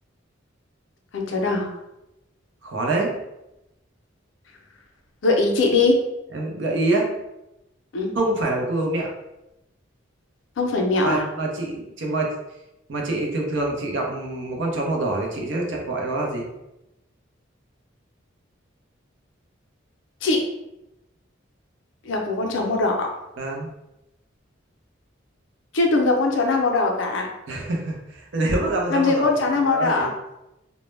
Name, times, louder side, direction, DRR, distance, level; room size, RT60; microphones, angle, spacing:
voice 1, 1.1-1.7 5.2-6.0 7.9-8.1 10.6-11.2 20.2-20.4 22.0-23.1 25.7-27.3 28.9-30.1, left 3 dB, 70° left, 2 dB, 0.5 m, -21 dB
voice 2, 2.6-3.2 6.3-7.1 8.2-9.1 11.0-12.3 12.9-16.5 23.4-23.7 27.5-29.3 29.7-30.1, right 2 dB, 65° right, 0 dB, 0.5 m, -25 dB
2.1 x 2.0 x 3.1 m, 0.92 s
head